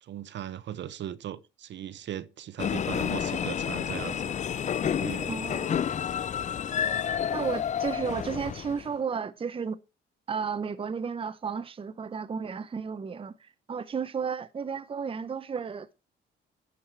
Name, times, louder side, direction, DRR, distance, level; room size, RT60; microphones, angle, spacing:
voice 1, 0.0-4.3 4.8-5.3, right 10 dB, 65° right, 0.8 m, -38 dB
sound 1, 2.6-8.9, left 8 dB, 35° left, 0.4 m, -30 dB
voice 2, 5.3-5.8 6.8-7.0 7.3-9.8 10.3-15.9, right 6 dB, 25° right, 0.7 m, -33 dB
11.0 x 4.9 x 5.7 m
cardioid pair, 90°, 20 cm